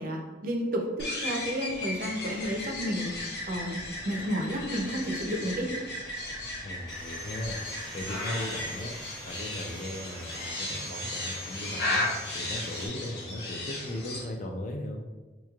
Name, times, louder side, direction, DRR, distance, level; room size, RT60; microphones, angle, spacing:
voice 1, 0.0-3.1 3.5-5.7, equal, 50° right, 1 dB, 0.5 m, -31 dB
sound 1, 1.0-14.2, left 2 dB, 60° left, 0.8 m, -35 dB
voice 2, 6.6-7.6 7.9-8.9 9.3-12.1 12.3-15.0, left 1 dB, 40° left, 3 dB, 0.4 m, -37 dB
Sawing, 6.9-12.9, right 1 dB, 5° left, 0.6 m, -43 dB
4.4 x 3.0 x 2.3 m, 1.2 s
head